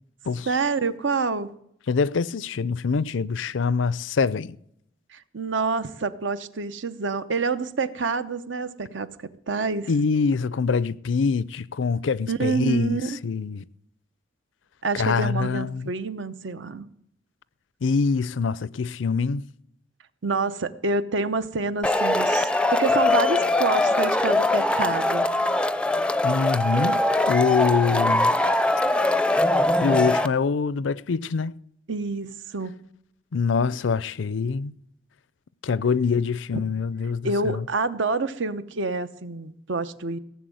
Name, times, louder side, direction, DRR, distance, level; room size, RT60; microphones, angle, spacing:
voice 1, 0.5-1.5 5.1-9.9 12.3-13.2 14.8-16.9 20.2-25.3 31.9-32.8 37.2-40.2, right 3 dB, 80° right, 0.9 m, -27 dB
voice 2, 1.9-4.6 9.9-13.6 14.9-15.9 17.8-19.4 26.2-28.3 29.8-31.6 33.3-34.7 35.6-37.7, left 5 dB, 80° left, 0.5 m, -24 dB
Male speech man speaking / Shout / Clapping, 21.8-30.3, left 2 dB, 5° left, 0.4 m, -22 dB
17.0 x 7.2 x 7.7 m
head